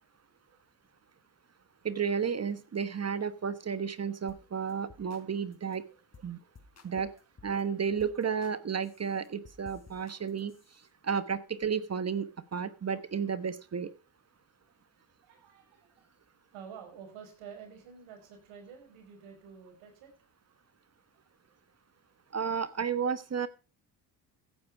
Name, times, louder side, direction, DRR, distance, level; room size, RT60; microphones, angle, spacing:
voice 1, 0.3-0.6 5.3-5.4 6.4-6.5 6.8-7.0 14.7-16.1 16.5-20.1 20.5-20.6 21.1-21.6 22.2-22.4, right 7 dB, 85° right, 4 dB, 5.8 m, -51 dB
voice 2, 1.8-5.8 6.2-6.4 6.8-7.1 7.4-10.5 11.0-13.9 22.3-23.5, right 6 dB, 35° right, 14 dB, 1.2 m, -32 dB
sound 1, 4.3-4.4 4.7-5.2 5.5-5.8 6.1-6.3 6.5-7.6 8.0-8.6 8.8-10.9, left 3 dB, 35° left, 4.3 m, -56 dB
15.5 x 9.8 x 4.7 m, 0.34 s
supercardioid pair, 80°, 47 cm